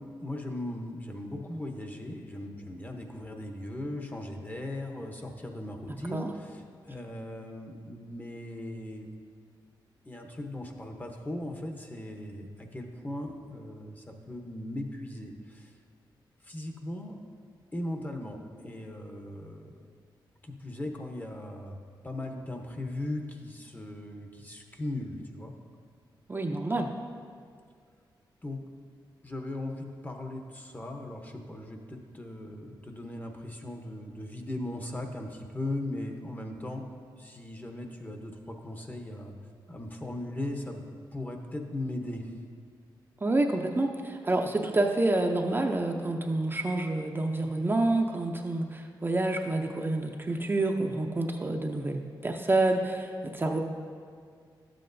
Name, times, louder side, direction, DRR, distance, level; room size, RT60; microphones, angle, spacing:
voice 1, 0.0-9.1 10.0-15.7 16.4-17.2 17.7-19.7 20.4-21.8 22.0-25.5 28.4-28.7 29.2-36.9 37.2-39.3 39.7-40.8 41.1-42.3, left 1 dB, 20° left, 3 dB, 0.8 m, -38 dB
voice 2, 26.3-26.9 43.2-53.6, right 2 dB, 25° right, 2 dB, 0.6 m, -28 dB
12.0 x 7.6 x 2.6 m, 2.1 s
cardioid pair, 80°, 9 cm